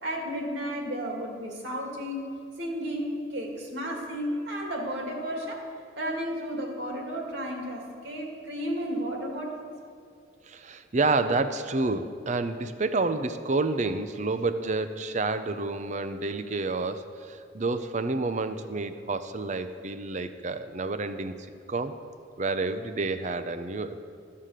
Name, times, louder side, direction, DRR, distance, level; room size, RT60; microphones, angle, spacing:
voice 1, 0.0-5.6 6.0-9.6, equal, 70° right, 0 dB, 2.4 m, -33 dB
voice 2, 10.4-21.4 21.7-22.0 22.4-24.1, right 3 dB, 40° right, 10 dB, 0.6 m, -29 dB
14.0 x 7.5 x 6.6 m, 2.2 s
head